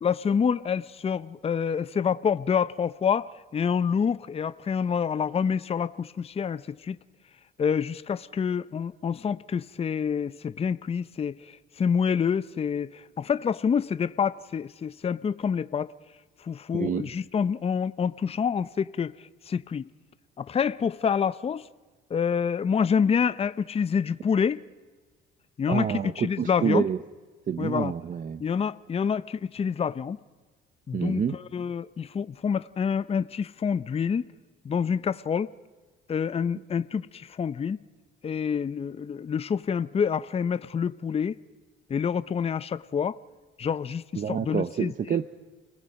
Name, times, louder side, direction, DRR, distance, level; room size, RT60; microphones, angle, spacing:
voice 1, 0.0-7.0 7.6-15.9 16.4-19.1 19.5-19.9 20.4-21.7 22.1-24.6 25.6-26.9 27.6-27.9 28.4-30.2 30.9-34.3 34.6-35.5 36.1-37.8 38.2-41.4 41.9-43.2 43.6-44.9, left 7 dB, 30° left, 0.6 m, -27 dB
voice 2, 16.7-17.1 25.7-27.0 27.5-28.4 30.9-31.4 44.1-45.3, right 7 dB, 40° right, 0.7 m, -28 dB
29.5 x 19.0 x 5.3 m
cardioid pair, 100°, 21 cm